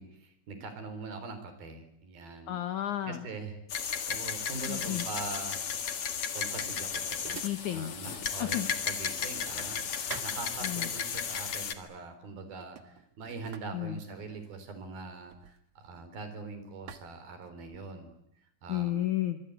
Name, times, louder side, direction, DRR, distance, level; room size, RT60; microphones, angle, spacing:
voice 1, 0.0-2.5 3.1-3.6 4.1-5.9 6.3-7.4 7.7-18.1 18.6-19.1, right 4 dB, 80° right, 9 dB, 5.8 m, -43 dB
voice 2, 2.5-3.3 4.7-5.0 7.4-7.9 8.4-8.7 10.6-10.9 13.7-14.0 18.7-19.4, left 13 dB, 65° left, 9 dB, 2.4 m, -32 dB
sound 1, 3.7-11.7, left 7 dB, 45° left, 2.3 m, -34 dB
sound 2, 6.9-8.4 8.7-11.0 11.9-12.2 12.5-16.4 16.9-18.0, right 8 dB, 55° right, 2.2 m, -50 dB
25.0 x 24.5 x 8.2 m, 0.78 s
omnidirectional pair, 4.2 m